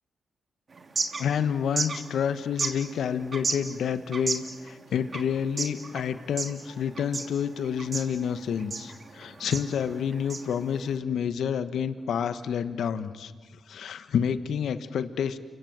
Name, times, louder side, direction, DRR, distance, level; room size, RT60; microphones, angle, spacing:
sound 1, 0.7-11.0, right 4 dB, 50° right, 2.8 m, -35 dB
voice 1, 1.2-13.3 13.7-15.4, left 7 dB, 75° left, 11 dB, 1.2 m, -29 dB
29.5 x 24.0 x 7.7 m, 1.4 s
supercardioid pair, 45°, 0 cm